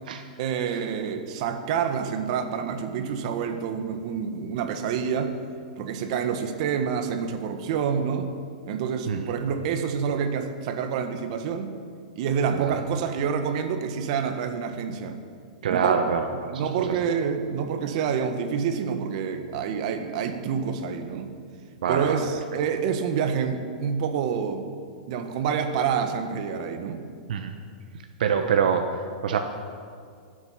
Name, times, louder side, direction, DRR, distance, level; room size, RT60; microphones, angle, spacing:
voice 1, 0.4-5.4 5.8-8.3 8.7-11.8 12.1-15.2 15.7-16.0 16.5-21.3 21.9-24.7 25.1-27.0, right 7 dB, 50° right, 7 dB, 1.4 m, -27 dB
voice 2, 15.6-17.0 21.8-22.3 27.3-27.6 28.2-29.4, right 6 dB, 75° right, 6 dB, 0.9 m, -25 dB
22.5 x 8.0 x 5.8 m, 2.2 s
hypercardioid pair, 145°, 5 cm